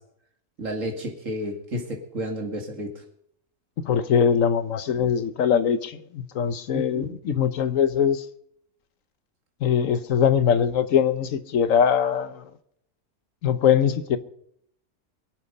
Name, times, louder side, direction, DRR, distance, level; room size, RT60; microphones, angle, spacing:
voice 1, 0.6-3.0 6.7-7.2, equal, 55° right, 2.7 m, -31 dB
voice 2, 3.8-8.2 9.6-12.4 13.4-14.2, left 7 dB, 60° left, 1.3 m, -22 dB
23.0 x 8.4 x 5.4 m
omnidirectional pair, 1.6 m